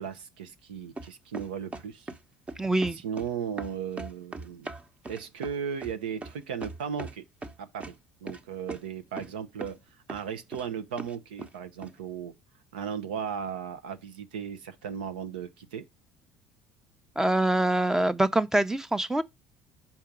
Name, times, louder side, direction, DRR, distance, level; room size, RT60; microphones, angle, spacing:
voice 1, 0.0-2.1 2.9-4.7 5.1-7.2 7.6-7.9 8.2-9.8 10.1-12.3 12.7-15.9, right 7 dB, 85° right, 0.8 m, -36 dB
sound 1, 1.0-2.2 2.5-3.3 3.6-7.1 7.4-7.9 8.3-8.4 8.7-8.8 9.2-9.3 9.6-9.8 10.1-10.6 11.0-11.5 11.8-11.9, right 2 dB, 25° right, 1.0 m, -39 dB
voice 2, 2.6-3.0 17.2-19.2, right 1 dB, 10° right, 0.7 m, -24 dB
5.9 x 4.6 x 5.1 m
hypercardioid pair, 70°, 5 cm